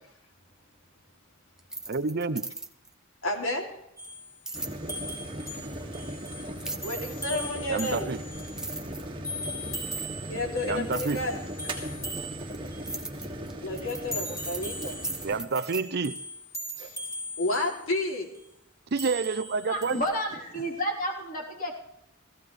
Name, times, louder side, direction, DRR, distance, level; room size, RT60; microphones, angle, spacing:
sound 1, 1.6-2.9 4.5-4.8 6.6-7.0 8.0-8.1 8.4-9.5 10.9-11.2 12.0-15.8, right 2 dB, 5° right, 0.8 m, -38 dB
voice 1, 1.9-2.5 7.7-8.2 10.7-11.2 15.2-16.2 18.9-20.0, right 4 dB, 50° right, 12 dB, 0.6 m, -28 dB
voice 2, 3.2-3.7 6.7-8.1 10.3-11.3 13.6-15.0 16.8-17.0 17.4-18.3, left 1 dB, 80° left, 1 dB, 2.8 m, -31 dB
sound 2, 4.0-8.8 9.2-10.8 11.1-13.1 13.9-18.4 19.0-20.1, equal, 15° left, 4.2 m, -39 dB
sound 3, 4.5-15.4, right 1 dB, 25° right, 2.0 m, -38 dB
voice 3, 19.7-21.8, equal, 40° left, -2 dB, 3.5 m, -31 dB
17.5 x 15.5 x 3.3 m, 0.81 s
head